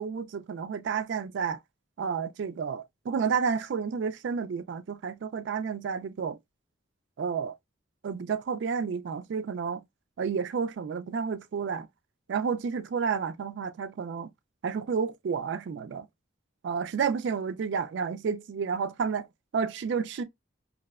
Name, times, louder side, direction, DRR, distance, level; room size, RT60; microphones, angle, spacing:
voice 1, 0.0-1.6 2.0-6.4 7.2-7.6 8.0-9.8 10.2-11.9 12.3-14.3 14.6-16.1 16.6-19.3 19.5-20.2, right 6 dB, 60° right, 0.3 m, -30 dB
2.6 x 2.1 x 2.2 m
head